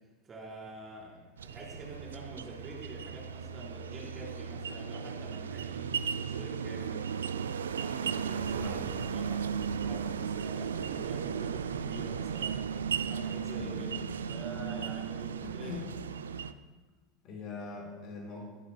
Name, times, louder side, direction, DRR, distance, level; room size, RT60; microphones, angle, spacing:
voice 1, 0.2-7.0 7.7-12.6 13.1-14.0 14.3-15.8, right 2 dB, 30° right, -3 dB, 4.7 m, -46 dB
sound 1, 1.4-16.5, right 7 dB, 75° right, 0.4 m, -35 dB
voice 2, 8.6-9.1 10.8-11.0 13.5-13.9 15.4-15.9 17.2-18.4, left 4 dB, 50° left, -1 dB, 4.8 m, -43 dB
21.5 x 13.5 x 2.3 m, 1.3 s
figure-of-eight pair, 80°, 0 cm